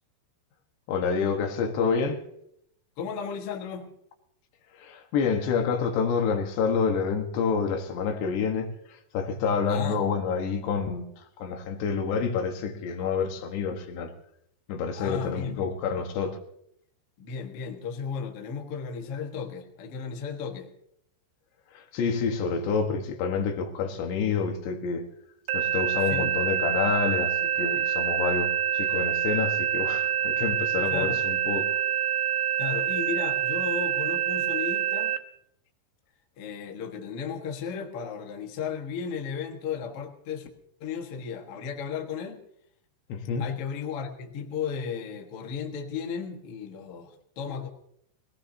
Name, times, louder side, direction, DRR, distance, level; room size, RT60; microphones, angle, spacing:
voice 1, 0.9-2.2 4.8-14.1 14.7-16.4 21.7-25.1 25.5-31.7 43.1-43.5, left 5 dB, 80° left, 4 dB, 3.6 m, -28 dB
voice 2, 3.0-3.9 9.7-10.0 15.0-15.7 17.2-20.7 26.1-26.3 30.8-31.2 32.6-35.1 36.4-40.5 40.8-42.4 43.4-47.7, left 6 dB, 55° left, 3 dB, 1.6 m, -34 dB
sound 1, 25.5-35.2, right 10 dB, 75° right, 2.5 m, -26 dB
21.0 x 17.5 x 2.8 m, 0.72 s
omnidirectional pair, 4.9 m